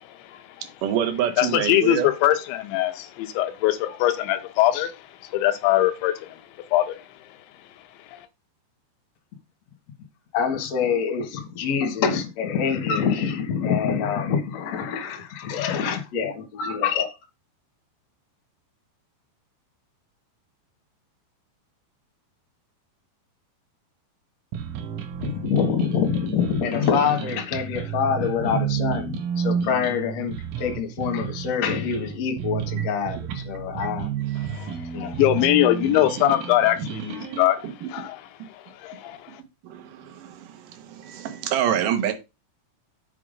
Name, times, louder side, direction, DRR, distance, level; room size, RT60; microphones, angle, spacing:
voice 1, 0.8-2.1 33.3-33.4 33.8-33.9 34.3-34.8 37.8-37.9 39.6-42.1, right 10 dB, 75° right, 2.0 m, -27 dB
voice 2, 1.4-4.9 5.3-6.4 6.7-7.0 8.1-8.2 34.5-38.2 38.8-39.3, left 13 dB, 80° left, 2.9 m, -22 dB
voice 3, 10.3-17.1 25.2-34.1 34.9-35.1, left 7 dB, 60° left, 1.7 m, -25 dB
sound 1, 24.5-37.5, right 8 dB, 90° right, 3.8 m, -31 dB
8.4 x 4.6 x 5.2 m
omnidirectional pair, 5.5 m